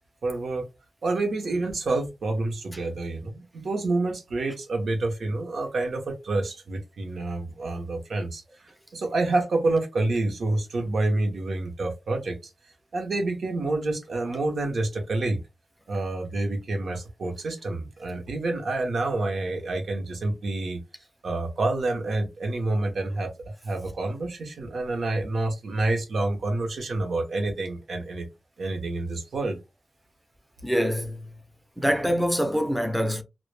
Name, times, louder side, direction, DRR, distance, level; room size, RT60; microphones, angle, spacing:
voice 1, 0.2-0.6 1.0-8.4 8.9-12.5 12.9-15.4 15.9-20.8 21.2-23.3 23.6-28.3 28.6-29.6, right 2 dB, 90° right, 0.6 m, -28 dB
voice 2, 30.6-31.2 31.8-33.2, equal, ahead, 0.3 m, -24 dB
2.1 x 2.0 x 3.0 m
wide cardioid pair, 145°, 0 cm